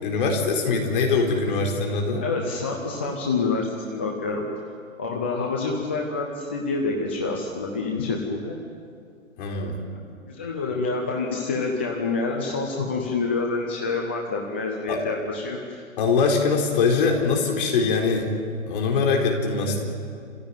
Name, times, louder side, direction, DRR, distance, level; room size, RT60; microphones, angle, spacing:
voice 1, 0.0-2.2 9.4-9.8 14.9-15.0 16.0-18.3 18.7-19.8, left 4 dB, 40° left, 1 dB, 4.2 m, -22 dB
voice 2, 2.2-4.4 5.0-8.6 9.5-10.0 10.3-15.8 19.7-19.8, left 3 dB, 10° left, 0 dB, 0.5 m, -27 dB
28.5 x 15.5 x 9.0 m, 2.3 s
hypercardioid pair, 150°, 41 cm